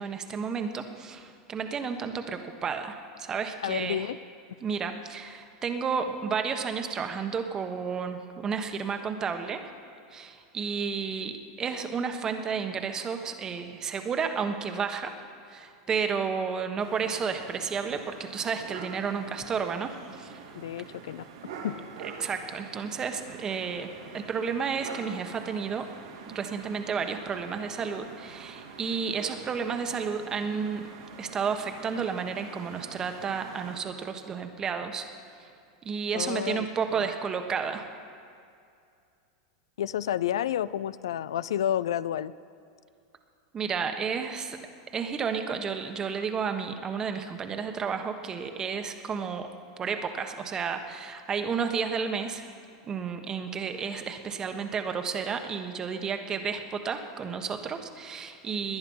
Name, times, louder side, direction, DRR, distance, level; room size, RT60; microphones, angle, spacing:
voice 1, 0.0-4.0 4.6-9.6 10.1-15.2 15.5-20.4 22.2-25.9 26.3-30.8 31.2-35.1 35.8-37.9 43.5-44.6 44.9-49.5 49.8-52.5 52.8-58.8, right 6 dB, 25° right, 6 dB, 1.3 m, -32 dB
voice 2, 3.6-4.2 20.5-21.2 21.6-21.7 36.1-36.7 36.9-37.1 39.8-42.3, left 10 dB, 85° left, 18 dB, 0.4 m, -30 dB
sound 1, 16.8-33.8, right 5 dB, 80° right, 2.2 m, -45 dB
20.0 x 10.5 x 5.6 m, 2.4 s
supercardioid pair, 125°, 3 cm